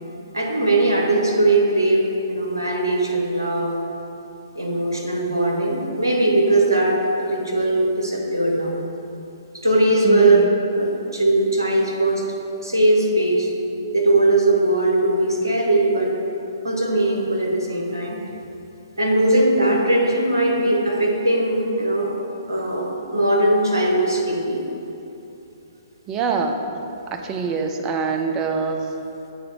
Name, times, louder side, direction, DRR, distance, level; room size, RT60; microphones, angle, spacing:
voice 1, 0.3-3.7 4.5-8.7 9.6-10.5 10.7-12.2 12.6-13.5 13.9-16.1 16.6-18.2 19.0-22.1 22.5-24.6, right 2 dB, 80° right, -1 dB, 1.1 m, -20 dB
voice 2, 10.0-10.4 26.1-26.6 27.1-28.8, right 5 dB, 20° right, 4 dB, 0.5 m, -24 dB
8.4 x 3.7 x 4.4 m, 2.8 s
figure-of-eight pair, 120°, 2 cm